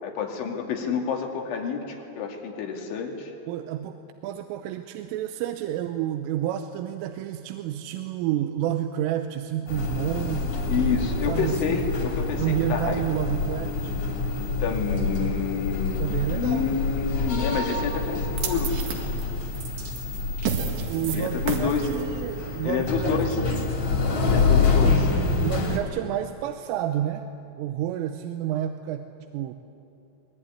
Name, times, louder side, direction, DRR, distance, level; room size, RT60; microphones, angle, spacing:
voice 1, 0.0-3.3 10.7-13.0 14.6-18.7 21.1-21.9 22.6-23.4 24.2-25.1, left 6 dB, 70° left, 2 dB, 4.6 m, -28 dB
voice 2, 3.5-10.7 11.3-11.8 12.4-14.0 16.0-16.8 20.9-23.6 25.4-27.3 27.6-29.5, right 11 dB, 85° right, 7 dB, 3.4 m, -30 dB
sound 1, 9.7-25.8, left 3 dB, 40° left, 3.5 m, -26 dB
sound 2, 18.4-24.7, right 6 dB, 65° right, 3.8 m, -34 dB
22.5 x 21.0 x 9.8 m, 2.7 s
omnidirectional pair, 5.8 m